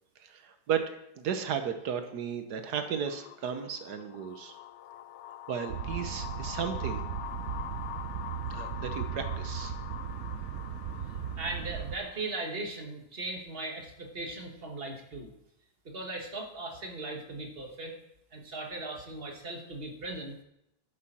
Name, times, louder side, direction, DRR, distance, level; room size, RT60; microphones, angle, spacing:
voice 1, 0.2-0.9 1.2-4.6 5.5-7.0 8.5-9.7, right 7 dB, 80° right, 8 dB, 1.5 m, -34 dB
sound 1, 2.9-12.3, left 13 dB, 75° left, 0.6 m, -44 dB
sound 2, 5.7-12.0, right 8 dB, 60° right, 0.9 m, -37 dB
voice 2, 11.4-15.3 15.8-17.9 18.3-20.4, right 2 dB, 40° right, 2 dB, 1.5 m, -38 dB
11.0 x 7.5 x 4.3 m, 0.80 s
omnidirectional pair, 1.7 m